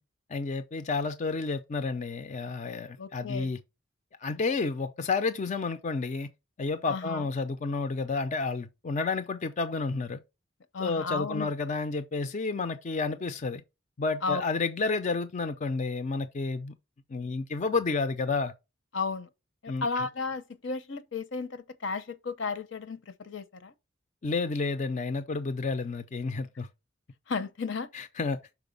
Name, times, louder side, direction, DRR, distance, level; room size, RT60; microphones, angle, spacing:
voice 1, 0.3-3.6 4.2-6.3 6.6-10.2 10.8-13.6 14.0-16.7 17.1-18.5 19.7-20.1 24.2-26.7 27.9-28.4, left 4 dB, 40° left, 0.5 m, -30 dB
voice 2, 3.0-3.5 6.9-7.3 10.7-11.5 14.2-14.4 18.9-19.3 19.6-23.7 27.3-27.9, left 4 dB, 70° left, 0.8 m, -33 dB
6.0 x 4.5 x 5.2 m
head